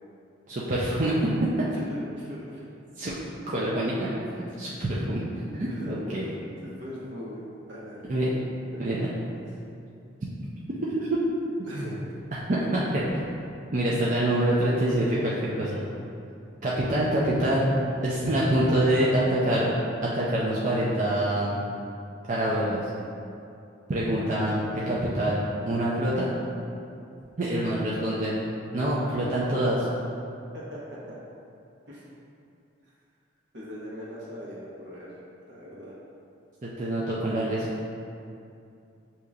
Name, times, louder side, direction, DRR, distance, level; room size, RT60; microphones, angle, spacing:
voice 1, 0.5-1.2 3.0-3.2 3.5-4.1 4.4-5.2 5.5-6.3 8.1-8.3 8.8-9.1 11.1-11.2 11.7-11.9 12.5-13.4 13.7-15.8 16.6-17.7 18.0-19.7 20.0-21.6 22.3-22.8 23.9-26.3 27.4-28.3 28.7-29.9 36.6-37.7, right 1 dB, 40° right, -7 dB, 0.4 m, -26 dB
voice 2, 1.7-2.7 5.7-6.3 6.6-8.1 8.7-9.2 11.7-12.0 30.5-31.2 31.9-32.0 33.5-35.2 35.5-36.0, equal, 75° right, -7 dB, 1.1 m, -41 dB
6.5 x 2.8 x 2.4 m, 2.6 s
head